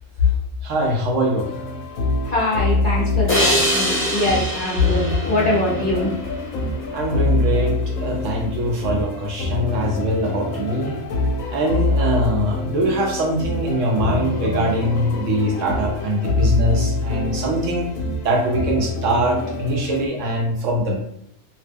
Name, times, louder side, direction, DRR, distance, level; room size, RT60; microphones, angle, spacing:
voice 1, 0.6-1.7 6.9-11.0 11.5-17.9 18.2-21.0, right 1 dB, 70° right, 0 dB, 0.9 m, -22 dB
sound 1, 1.4-20.1, left 2 dB, 75° left, 0.9 m, -25 dB
voice 2, 2.2-6.1, left 3 dB, 45° left, -6 dB, 0.8 m, -21 dB
sound 2, 3.3-6.6, equal, 20° left, 0.3 m, -23 dB
2.9 x 2.0 x 3.4 m, 0.73 s
omnidirectional pair, 1.5 m